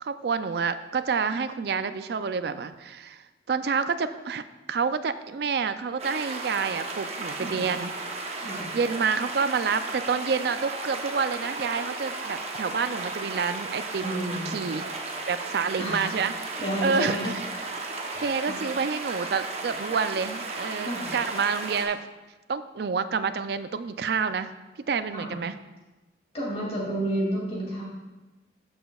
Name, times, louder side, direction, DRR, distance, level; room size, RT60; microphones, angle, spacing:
voice 1, 0.0-3.2 3.5-4.4 4.7-7.9 8.7-14.9 15.3-17.4 18.2-22.0 22.5-24.5 24.9-25.6, right 5 dB, 60° right, 12 dB, 0.4 m, -28 dB
sound 1, 6.0-21.9, right 3 dB, 35° right, 0.8 m, -35 dB
voice 2, 8.3-8.6 14.0-14.5 15.8-16.1 16.6-17.3 18.1-18.3 20.8-21.1 25.1-25.3 26.3-27.8, equal, 35° left, -4 dB, 2.5 m, -30 dB
13.0 x 6.0 x 2.3 m, 1.1 s
head